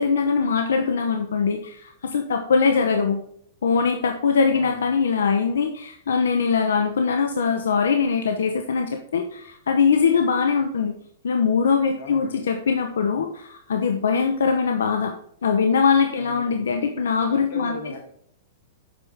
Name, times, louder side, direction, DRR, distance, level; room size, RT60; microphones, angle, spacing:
voice 1, 0.0-3.2 3.6-10.9 11.2-15.1 15.4-17.7, left 5 dB, 90° left, 5 dB, 0.9 m, -22 dB
voice 2, 4.5-4.9 11.9-12.4 16.1-16.6 17.3-18.1, left 2 dB, 55° left, 2 dB, 3.0 m, -38 dB
8.6 x 6.2 x 3.6 m, 0.67 s
hypercardioid pair, 145°, 0 cm